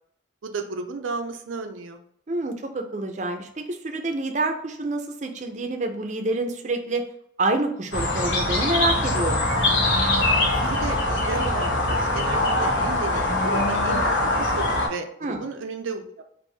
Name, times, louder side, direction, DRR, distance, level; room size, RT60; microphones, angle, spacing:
voice 1, 0.4-2.0 10.6-14.1 14.4-16.2, right 4 dB, 85° right, 6 dB, 0.5 m, -33 dB
voice 2, 2.3-7.1 7.4-9.4 15.2-15.5, right 2 dB, 40° right, 6 dB, 0.5 m, -27 dB
sound 1, 7.9-14.9, left 2 dB, 80° left, 1.4 m, -22 dB
4.5 x 2.5 x 3.2 m, 0.68 s
head